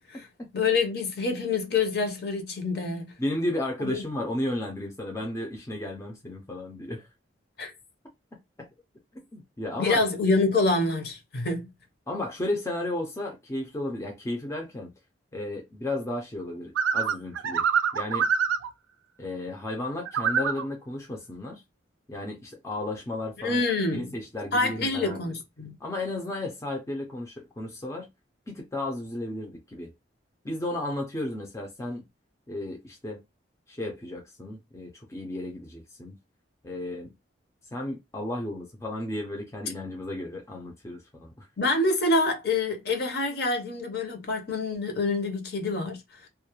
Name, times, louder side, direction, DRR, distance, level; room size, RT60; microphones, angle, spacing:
voice 1, 0.5-3.1 3.8-4.0 7.6-7.7 9.8-11.6 23.4-24.1 24.5-25.8 41.6-46.0, left 3 dB, 55° left, 0.6 m, -26 dB
voice 2, 3.2-7.1 8.6-8.7 9.1-10.0 12.1-14.9 15.3-17.6 17.9-18.3 19.2-21.6 22.1-23.6 23.9-25.2 25.8-28.1 28.5-29.9 30.4-32.0 32.5-33.2 33.7-36.2 36.6-37.1 37.7-41.5, left 1 dB, 15° left, 0.4 m, -33 dB
sound 1, 16.8-18.7 20.1-20.6, right 7 dB, 85° right, 0.3 m, -25 dB
2.3 x 2.1 x 2.8 m
head